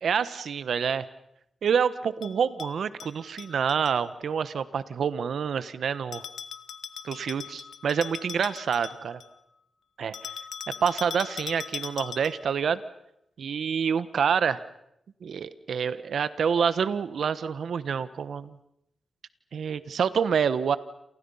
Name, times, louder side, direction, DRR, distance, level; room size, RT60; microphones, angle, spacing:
voice 1, 0.0-1.1 1.6-6.2 7.0-9.2 10.0-10.3 10.8-12.8 13.4-14.6 15.2-18.6 19.5-20.8, right 7 dB, 85° right, 14 dB, 1.2 m, -27 dB
Bell, 2.2-3.9 6.1-9.4 10.1-12.5, left 7 dB, 85° left, 1.3 m, -40 dB
29.0 x 28.5 x 5.7 m, 0.78 s
wide cardioid pair, 100°, 0 cm